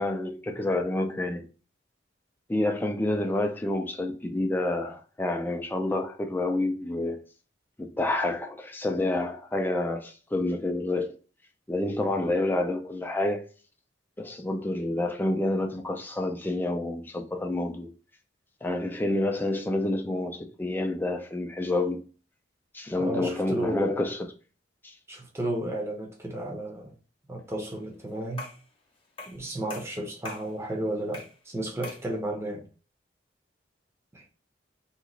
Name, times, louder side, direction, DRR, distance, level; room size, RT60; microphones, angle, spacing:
voice 1, 0.0-1.4 2.5-7.2 7.8-11.2 11.7-13.4 14.2-17.9 18.6-22.0 22.7-24.3 24.8-24.9, left 2 dB, 10° left, 0.4 m, -28 dB
voice 2, 23.0-23.9 25.1-26.9 27.3-28.5 29.3-32.6 34.1-34.2, right 1 dB, 15° right, 0.7 m, -33 dB
sound 1, 28.4-28.7 29.2-29.4 29.7-30.5 31.1-31.4 31.8-32.1, left 3 dB, 30° left, 0.9 m, -41 dB
2.9 x 2.4 x 3.7 m
head